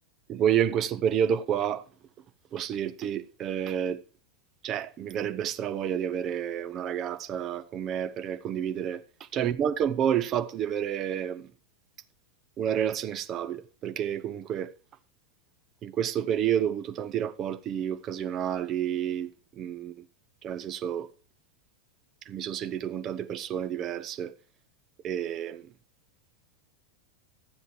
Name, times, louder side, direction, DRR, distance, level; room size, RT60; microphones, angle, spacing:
voice 1, 0.3-1.8 2.5-4.0 4.6-11.5 12.6-14.7 15.8-19.3 19.6-20.0 20.4-21.1 22.3-24.4 25.0-25.7, right 9 dB, 30° right, 0.9 m, -29 dB
12.5 x 7.8 x 4.7 m
figure-of-eight pair, 90°, 0 cm